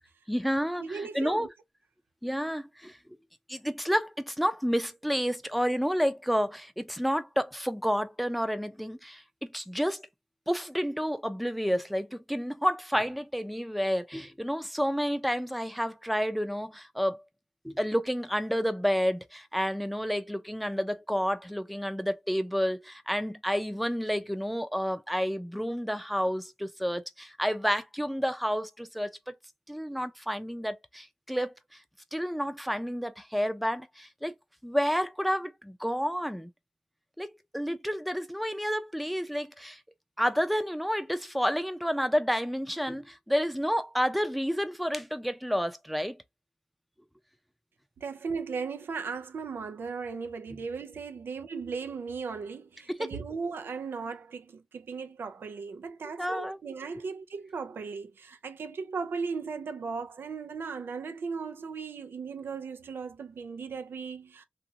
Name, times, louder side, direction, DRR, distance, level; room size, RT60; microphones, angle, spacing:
voice 1, 0.3-1.5 2.2-3.0 3.5-10.0 10.5-17.2 17.6-29.2 29.7-31.5 32.1-34.3 34.6-36.5 37.2-39.8 40.2-46.2 52.9-53.1 56.2-56.6, equal, ahead, 0.5 m, -30 dB
voice 2, 0.8-1.5 48.0-64.4, right 5 dB, 80° right, 0.5 m, -37 dB
2.9 x 2.5 x 2.7 m
cardioid pair, 45°, 4 cm